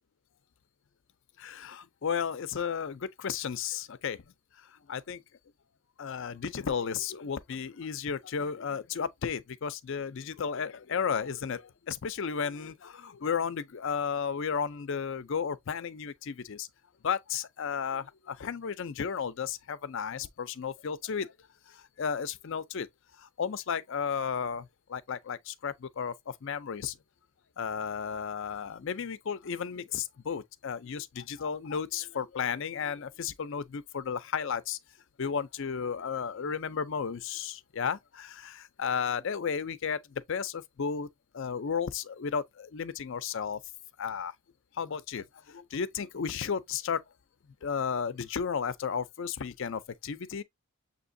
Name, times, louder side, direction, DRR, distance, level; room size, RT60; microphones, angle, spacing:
voice 1, 1.4-4.2 4.7-5.2 6.0-16.7 17.0-21.3 21.7-22.9 23.2-27.0 27.6-34.8 35.2-41.1 41.3-43.6 44.0-44.3 44.7-47.0 47.6-50.4, left 6 dB, 55° left, 0.4 m, -33 dB
7.0 x 2.8 x 2.6 m
head